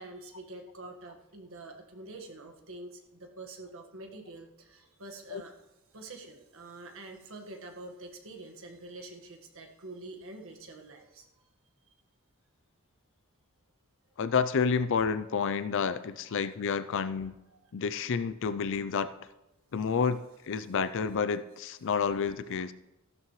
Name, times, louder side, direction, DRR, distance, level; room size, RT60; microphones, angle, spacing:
voice 1, 0.0-5.5 5.9-11.3 16.3-16.4 17.5-17.6, right 2 dB, 65° right, 3 dB, 1.6 m, -46 dB
voice 2, 14.2-17.4 17.7-19.1 19.7-20.2 20.5-22.7, left 6 dB, 60° left, 13 dB, 0.4 m, -29 dB
14.0 x 12.5 x 3.2 m, 0.96 s
head